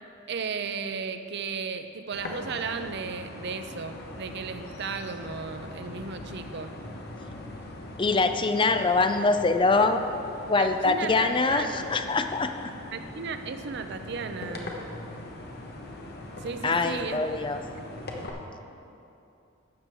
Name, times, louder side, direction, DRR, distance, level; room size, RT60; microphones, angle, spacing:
voice 1, 0.3-6.8 10.6-11.9 12.9-14.8 16.4-17.2, right 5 dB, 55° right, 8 dB, 0.6 m, -35 dB
sound 1, 2.1-18.3, left 1 dB, 50° left, 1.2 m, -41 dB
voice 2, 8.0-10.0 10.5-12.7 16.6-17.6, left 3 dB, 25° left, 7 dB, 0.4 m, -24 dB
12.5 x 5.2 x 7.6 m, 2.7 s
head